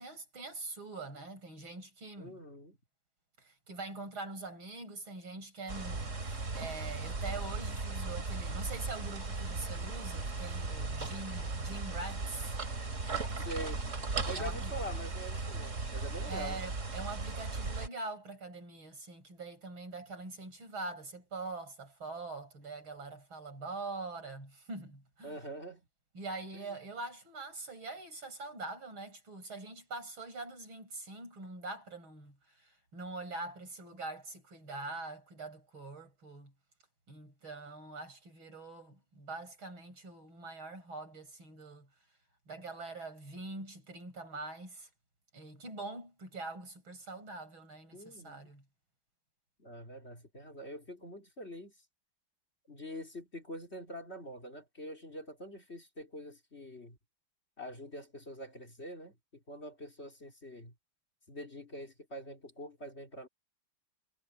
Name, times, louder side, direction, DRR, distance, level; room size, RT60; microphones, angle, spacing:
voice 1, 0.0-2.4 3.4-12.6 14.3-14.7 16.2-25.4 26.1-36.5 37.1-41.9 42.5-44.9 45.3-48.6, right 3 dB, 80° right, 8.7 m, -44 dB
voice 2, 2.2-2.8 13.4-13.8 14.3-16.6 25.2-25.8 26.5-26.8 47.9-48.4 49.6-51.7 52.7-57.0 57.6-60.7 61.3-63.3, equal, 30° left, 3.8 m, -45 dB
sound 1, 5.7-17.9, right 3 dB, 35° right, 2.8 m, -37 dB
omnidirectional pair, 2.2 m